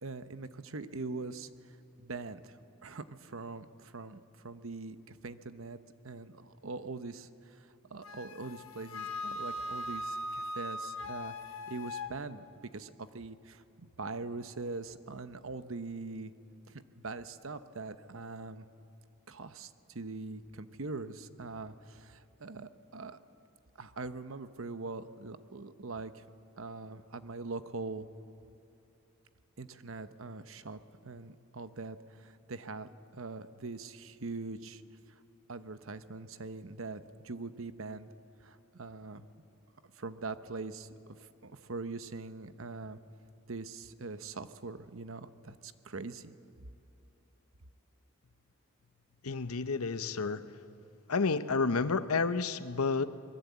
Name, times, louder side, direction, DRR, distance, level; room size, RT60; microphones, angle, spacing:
voice 1, 0.0-5.8 6.0-11.3 11.7-12.4 12.7-16.3 16.7-18.7 19.3-23.2 23.8-26.2 26.6-28.1 29.6-34.8 35.5-38.1 38.4-39.2 39.9-40.9 41.2-43.0 43.5-46.4, right 3 dB, 65° right, 12 dB, 0.9 m, -42 dB
Wind instrument woodwind instrument, 8.0-12.1, left 1 dB, 70° left, 1.3 m, -39 dB
voice 2, 49.2-50.4 51.1-53.1, left 4 dB, 90° left, 12 dB, 0.9 m, -30 dB
25.5 x 21.5 x 8.3 m, 2.9 s
head